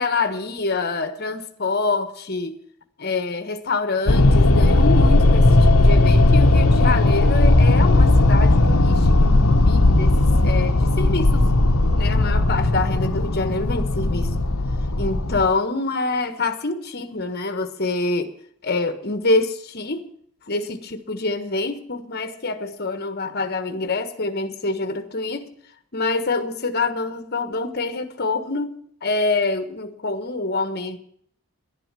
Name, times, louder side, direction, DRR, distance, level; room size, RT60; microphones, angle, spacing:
voice 1, 0.0-2.6 3.0-11.4 12.0-14.3 15.0-18.3 18.6-20.0 20.4-25.5 25.9-28.7 29.0-31.0, left 3 dB, 45° left, 9 dB, 1.4 m, -26 dB
sound 1, 4.1-15.5, left 2 dB, 85° left, 1.1 m, -16 dB
11.5 x 11.0 x 7.5 m, 0.64 s
head